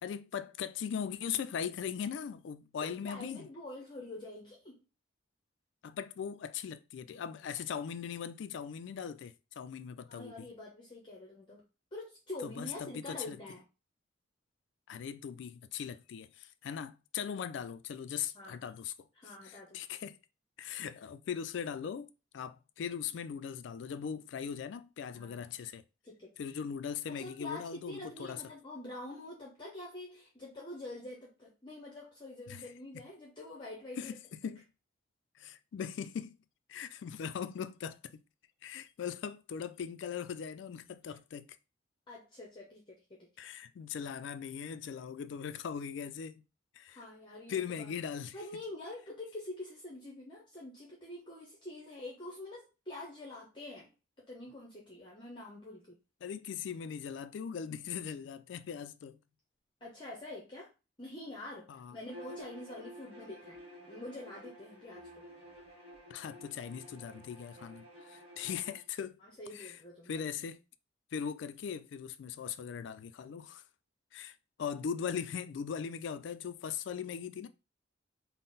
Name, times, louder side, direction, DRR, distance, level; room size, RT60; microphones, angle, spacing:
voice 1, 0.0-3.5 5.8-10.5 12.4-13.4 14.9-19.1 19.4-20.2 20.6-25.8 26.4-28.4 32.5-32.6 34.0-34.7 35.4-36.4 36.7-38.2 38.6-41.6 43.4-46.4 46.7-47.0 47.5-48.4 56.2-59.2 61.7-62.0 66.1-69.2 69.5-69.8 70.1-70.6 71.1-73.6 74.1-77.5, left 7 dB, 70° left, 0.3 m, -40 dB
voice 2, 2.8-4.8 10.1-11.6 11.9-13.7 18.3-18.6 19.1-19.8 25.1-25.5 26.0-26.3 27.1-34.1 41.1-41.2 42.1-43.3 46.9-47.9 48.3-53.9 54.3-56.0 59.8-60.7 61.0-65.2 69.2-70.2, left 2 dB, 25° left, 0.7 m, -46 dB
Bowed string instrument, 62.1-68.8, equal, 30° right, 1.3 m, -52 dB
3.8 x 2.0 x 3.9 m
head